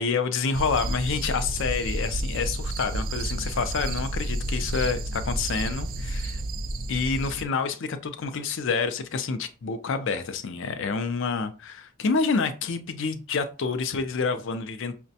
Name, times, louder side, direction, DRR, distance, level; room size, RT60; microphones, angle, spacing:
voice 1, 0.0-6.4 6.9-14.9, left 5 dB, 60° left, 0.4 m, -28 dB
sound 1, 0.5-7.5, right 2 dB, 40° right, 0.3 m, -31 dB
5.7 x 2.1 x 2.7 m
head